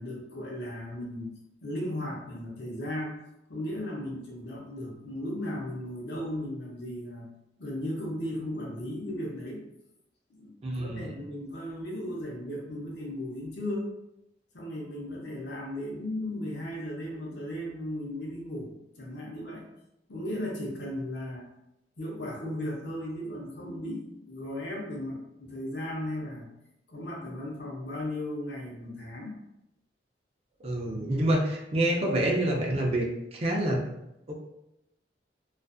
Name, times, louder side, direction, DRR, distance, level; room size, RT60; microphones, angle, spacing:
voice 1, 0.0-1.3 1.6-3.2 3.5-7.3 7.6-9.6 10.3-13.9 14.5-18.7 19.0-19.7 20.1-21.5 22.0-26.5 26.9-29.3, left 1 dB, 75° left, -3 dB, 0.7 m, -36 dB
voice 2, 10.6-11.1 30.6-33.8 34.3-34.4, right 1 dB, 35° right, -1 dB, 0.4 m, -27 dB
2.4 x 2.4 x 2.4 m, 0.86 s
head